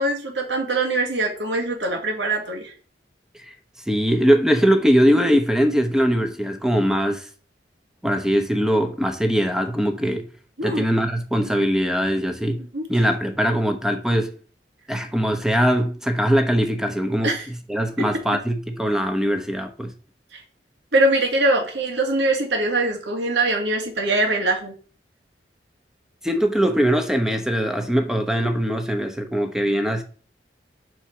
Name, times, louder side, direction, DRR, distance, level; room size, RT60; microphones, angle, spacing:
voice 1, 0.0-2.7 10.6-10.9 12.7-12.8 17.2-17.5 18.0-18.1 20.3-20.4 20.9-24.7, right 2 dB, 85° right, 2.0 m, -22 dB
voice 2, 3.9-7.3 8.0-10.3 10.6-12.6 12.9-14.3 14.9-17.3 17.7-19.9 26.2-30.0, equal, 5° right, 0.9 m, -21 dB
5.7 x 4.7 x 5.7 m
head